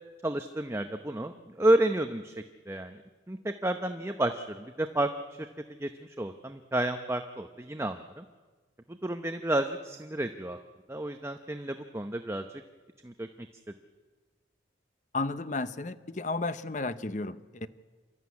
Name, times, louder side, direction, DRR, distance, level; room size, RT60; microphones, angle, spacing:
voice 1, 0.2-2.3 2.7-3.0 3.3-5.5 5.8-8.2 8.9-10.6 10.9-12.4 13.0-13.3, right 1 dB, 15° right, 6 dB, 0.7 m, -30 dB
voice 2, 15.1-17.7, left 3 dB, 40° left, 13 dB, 0.8 m, -33 dB
28.0 x 13.5 x 9.6 m, 1.4 s
head